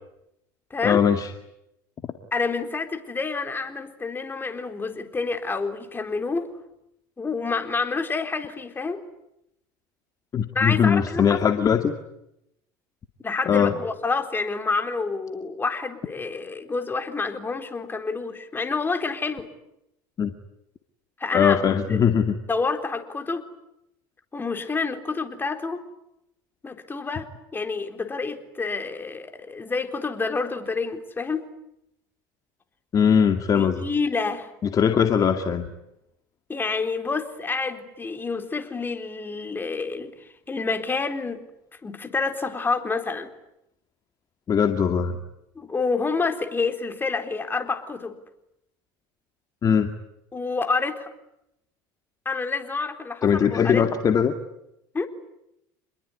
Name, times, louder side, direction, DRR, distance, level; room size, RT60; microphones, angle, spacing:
voice 1, 0.8-1.3 10.3-11.9 13.5-13.7 20.2-20.3 21.3-22.4 32.9-33.8 34.6-35.7 44.5-45.2 49.6-49.9 53.2-54.3, left 7 dB, 40° left, 6 dB, 2.3 m, -20 dB
voice 2, 2.3-6.5 7.2-9.0 10.5-11.5 13.2-19.5 21.2-22.0 22.5-23.4 24.3-25.8 26.6-31.4 33.5-34.5 36.5-41.4 41.8-43.3 45.6-48.2 50.3-51.1 52.3-53.8 54.9-55.1, left 4 dB, 20° left, 6 dB, 4.1 m, -28 dB
28.0 x 21.5 x 9.8 m, 0.84 s
supercardioid pair, 90°, 10 cm